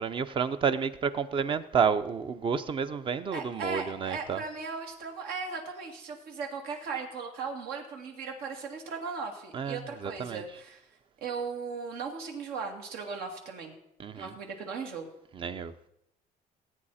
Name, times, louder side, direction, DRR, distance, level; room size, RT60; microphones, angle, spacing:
voice 1, 0.0-4.4 9.5-10.4 14.0-14.3 15.3-15.7, right 6 dB, 35° right, 12 dB, 0.7 m, -30 dB
voice 2, 3.3-10.8 11.2-13.7 14.1-15.1, right 5 dB, 80° right, 2 dB, 2.6 m, -37 dB
18.5 x 8.8 x 4.3 m, 0.79 s
cardioid pair, 145°, 16 cm